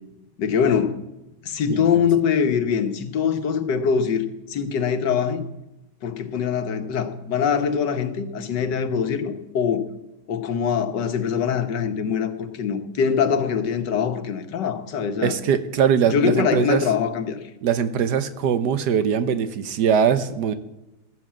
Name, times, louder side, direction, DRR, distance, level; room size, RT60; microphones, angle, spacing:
voice 1, 0.4-1.0 1.4-5.4 6.0-9.8 10.3-15.3 16.1-17.4, left 7 dB, 85° left, 7 dB, 1.8 m, -23 dB
voice 2, 1.7-2.0 15.2-16.8 17.6-20.5, right 7 dB, 75° right, 12 dB, 1.4 m, -21 dB
14.5 x 10.5 x 7.5 m, 0.95 s
omnidirectional pair, 1.8 m